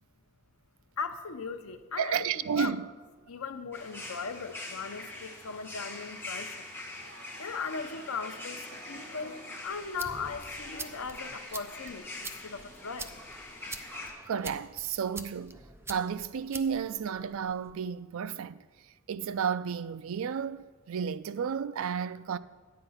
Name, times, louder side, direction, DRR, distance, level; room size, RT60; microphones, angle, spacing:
voice 1, 1.0-2.8 3.3-6.7 7.4-13.2, left 5 dB, 75° left, 0.8 m, -38 dB
voice 2, 2.0-2.9 14.3-15.6 15.9-18.6 19.1-22.4, right 7 dB, 70° right, 0.4 m, -32 dB
sound 1, 3.7-14.1, left 2 dB, 10° left, 1.6 m, -44 dB
sound 2, 6.9-11.8, right 3 dB, 50° right, 1.0 m, -54 dB
sound 3, 9.7-17.7, right 3 dB, 10° right, 0.5 m, -46 dB
9.6 x 8.8 x 5.6 m
head